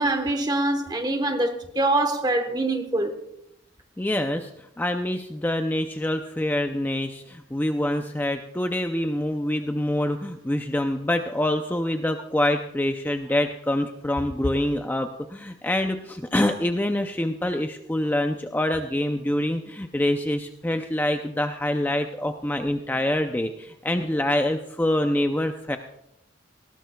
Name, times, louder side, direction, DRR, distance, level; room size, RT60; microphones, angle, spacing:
voice 1, 0.0-3.2, right 2 dB, 20° right, 1.2 m, -24 dB
voice 2, 4.0-25.8, left 1 dB, 10° left, 0.5 m, -26 dB
19.0 x 16.5 x 2.3 m
head